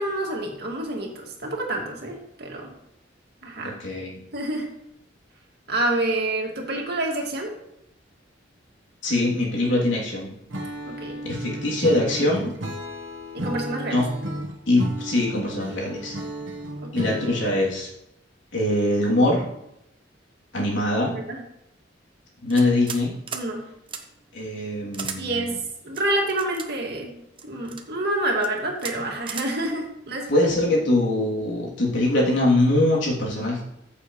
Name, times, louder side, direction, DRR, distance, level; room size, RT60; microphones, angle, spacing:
voice 1, 0.0-2.7 3.4-3.8 4.3-4.7 5.7-7.5 10.8-11.2 13.3-14.0 16.8-17.1 21.0-21.4 23.3-23.6 25.2-25.6 25.8-27.2 27.4-30.5, right 1 dB, 60° right, 0 dB, 2.3 m, -28 dB
voice 2, 3.6-4.2 9.0-10.3 11.2-12.5 13.9-14.1 14.7-16.2 16.9-17.9 18.5-19.4 20.5-21.1 22.4-23.1 24.3-25.5 30.3-33.6, left 1 dB, 80° left, -4 dB, 3.1 m, -22 dB
Acoustic guitar / Strum, 10.5-17.7, right 1 dB, 90° right, 1.3 m, -33 dB
sound 1, 22.5-23.0 23.3-23.5 23.9-24.0 24.9-25.2 25.9-26.7 27.4-27.8 28.4-28.5 28.8-29.0 29.3-29.5, right 6 dB, 30° right, 0.9 m, -34 dB
14.5 x 7.0 x 3.2 m, 0.85 s
head